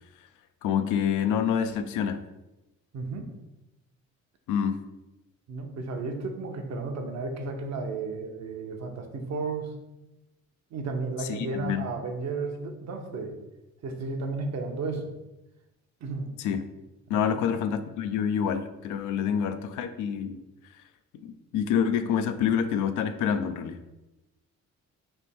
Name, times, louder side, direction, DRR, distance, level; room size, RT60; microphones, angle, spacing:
voice 1, 0.6-2.2 4.5-4.8 11.2-11.9 16.4-16.6 17.1-20.4 21.2-23.8, left 8 dB, 85° left, 10 dB, 0.5 m, -27 dB
voice 2, 2.9-3.3 5.5-9.7 10.7-13.4 13.8-15.1 16.0-16.3 17.1-17.4, right 3 dB, 60° right, 4 dB, 0.8 m, -33 dB
3.4 x 3.1 x 4.3 m, 0.98 s
cardioid pair, 90°, 30 cm